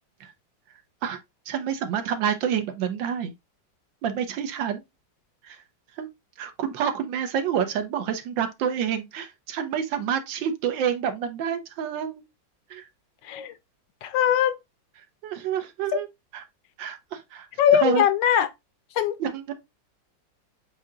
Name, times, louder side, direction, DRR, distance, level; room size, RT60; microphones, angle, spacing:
voice 1, 1.5-3.3 4.0-4.8 5.4-5.6 6.0-6.1 6.4-12.2 12.7-12.9 15.2-16.1 16.3-16.4 16.8-17.5 17.7-18.1 19.2-19.5, right 8 dB, 90° right, 1.5 m, -28 dB
voice 2, 14.0-14.5 17.6-18.5 19.0-19.1, left 9 dB, 75° left, 1.2 m, -20 dB
7.4 x 2.8 x 2.4 m
omnidirectional pair, 2.0 m